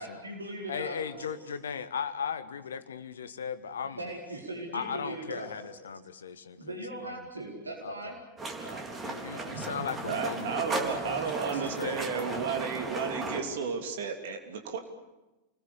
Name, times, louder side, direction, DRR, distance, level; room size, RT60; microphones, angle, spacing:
voice 1, 0.0-1.6 4.0-5.7 6.6-8.2 8.4-8.9 9.1-9.6 11.1-11.8 12.0-12.4, right 1 dB, 80° right, 0 dB, 4.6 m, -40 dB
voice 2, 0.7-4.0 4.7-6.8 7.0-7.1 7.8-7.9 9.0-11.1 11.8-12.0, left 7 dB, 65° left, 13 dB, 1.4 m, -37 dB
sound 1, 8.4-13.4, right 3 dB, 20° right, 4.0 m, -36 dB
voice 3, 9.3-14.8, right 5 dB, 55° right, 5 dB, 3.1 m, -33 dB
28.5 x 20.5 x 8.4 m, 1.1 s
figure-of-eight pair, 90°, 0 cm